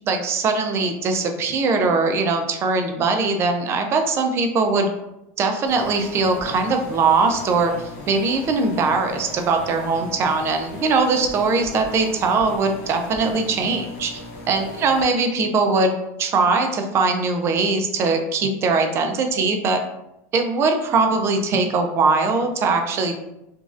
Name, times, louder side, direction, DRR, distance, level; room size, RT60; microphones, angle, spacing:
voice 1, 0.1-4.9 5.4-7.7 8.1-14.2 14.5-19.8 20.3-23.1, right 4 dB, 30° right, 5 dB, 0.4 m, -21 dB
sound 1, 5.7-15.0, left 1 dB, 65° left, 0.8 m, -38 dB
3.0 x 2.5 x 2.4 m, 0.87 s
supercardioid pair, 145°, 8 cm